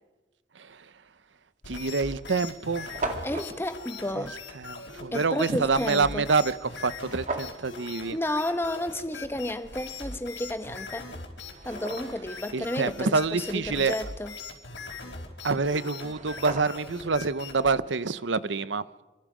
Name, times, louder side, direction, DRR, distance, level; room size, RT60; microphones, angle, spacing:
voice 1, 0.5-0.9 1.7-2.9 4.1-4.3 4.5-8.2 12.5-14.0 15.4-18.8, right 4 dB, 85° right, 0.9 m, -27 dB
sound 1, 1.2-1.4 2.1-2.2 2.3-2.4 2.6-3.5 7.0-7.6 10.5-10.6 11.2-12.3 15.7-15.8 16.0-17.0, right 2 dB, 40° right, 2.3 m, -36 dB
sound 2, 1.6-17.7, left 4 dB, 85° left, 4.9 m, -41 dB
voice 2, 3.2-4.4 5.1-6.2 8.1-11.1 11.6-14.3, left 1 dB, 15° left, 1.0 m, -32 dB
27.5 x 25.5 x 5.1 m
head